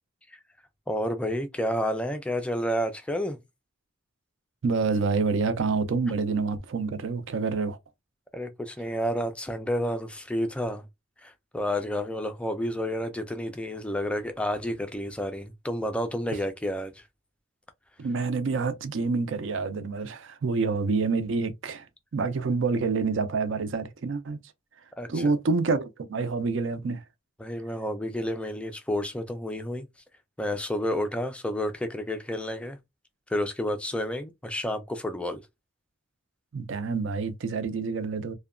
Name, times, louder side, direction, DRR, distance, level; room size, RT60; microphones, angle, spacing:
voice 1, 0.9-3.4 8.3-10.9 11.2-17.0 25.0-25.3 27.4-29.9 30.4-32.8 33.3-35.4, equal, 5° left, 0.3 m, -30 dB
voice 2, 4.6-7.8 18.0-21.9 22.1-24.4 25.1-27.0 36.5-38.3, right 4 dB, 60° right, 0.4 m, -27 dB
2.7 x 2.1 x 2.4 m
head